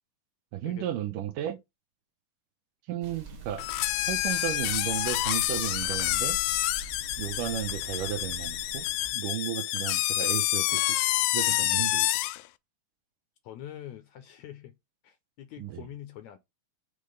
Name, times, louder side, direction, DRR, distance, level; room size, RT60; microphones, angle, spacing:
voice 1, 0.5-1.6 2.9-3.6 4.1-6.4 7.2-8.9 9.1-11.0 11.3-12.1 15.6-15.8, right 11 dB, 80° right, 2.5 m, -34 dB
sound 1, 3.0-9.1, right 3 dB, 40° right, 2.2 m, -44 dB
degonfl long vibrato, 3.6-12.4, left 17 dB, 90° left, 2.2 m, -28 dB
voice 2, 13.4-14.8 15.0-16.4, left 11 dB, 75° left, 1.8 m, -44 dB
6.7 x 3.5 x 5.2 m
omnidirectional pair, 3.9 m